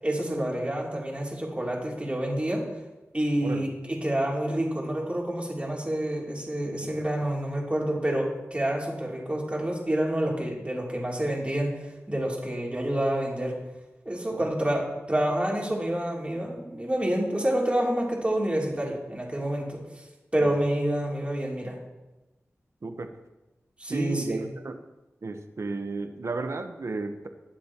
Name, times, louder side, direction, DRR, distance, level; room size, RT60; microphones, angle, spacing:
voice 1, 0.0-2.6 3.1-13.5 14.0-19.8 20.3-21.8 23.8-24.4, right 1 dB, 25° right, -3 dB, 3.0 m, -28 dB
voice 2, 23.9-24.8 25.2-27.3, right 3 dB, 65° right, 7 dB, 1.0 m, -33 dB
20.5 x 7.3 x 3.0 m, 1.1 s
wide cardioid pair, 55°, 5 cm